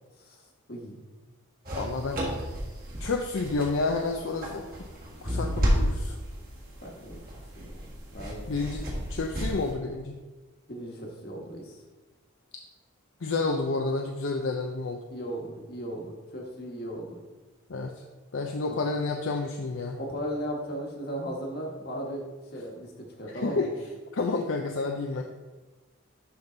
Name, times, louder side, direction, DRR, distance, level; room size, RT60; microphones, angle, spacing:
voice 1, 0.7-1.0 6.8-7.2 7.6-8.5 8.8-9.0 10.7-11.8 15.1-17.2 18.7-18.9 20.0-23.7, equal, 50° left, -1 dB, 1.5 m, -37 dB
sound 1, 1.7-9.7, equal, 45° right, 1.7 m, -32 dB
voice 2, 1.8-2.2 3.0-4.6 5.2-6.2 8.5-10.2 13.2-15.0 17.7-18.0 18.3-20.0 23.3-23.7 24.1-25.2, left 3 dB, 65° left, 2 dB, 0.6 m, -30 dB
11.5 x 3.9 x 3.9 m, 1.2 s
head